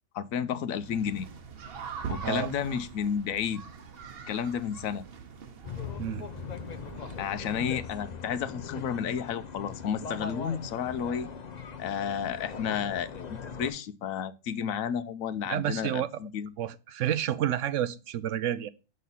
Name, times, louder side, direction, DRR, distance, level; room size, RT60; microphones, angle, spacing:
voice 1, 0.1-1.3 2.1-3.6 4.3-5.0 7.2-11.3 11.8-16.5, left 8 dB, 85° left, 1.1 m, -32 dB
sound 1, 0.8-7.7, right 6 dB, 50° right, 1.0 m, -43 dB
sound 2, 5.6-13.7, left 5 dB, 40° left, 0.7 m, -40 dB
voice 2, 6.0-6.3 7.0-7.1 15.5-16.1 16.6-18.7, right 11 dB, 70° right, 0.9 m, -30 dB
7.4 x 5.5 x 4.0 m
omnidirectional pair, 1.4 m